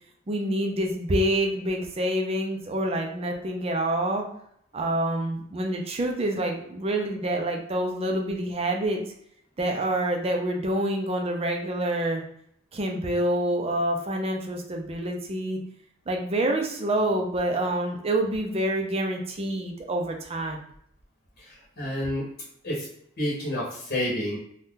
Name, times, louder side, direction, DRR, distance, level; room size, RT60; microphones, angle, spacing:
voice 1, 0.3-4.2 4.7-9.0 9.6-12.2 12.7-15.6 16.1-20.6, right 1 dB, 30° right, 2 dB, 0.5 m, -27 dB
voice 2, 21.4-22.3 22.6-22.9 23.2-24.4, left 1 dB, 50° left, -5 dB, 1.0 m, -29 dB
2.7 x 2.4 x 3.5 m, 0.68 s
head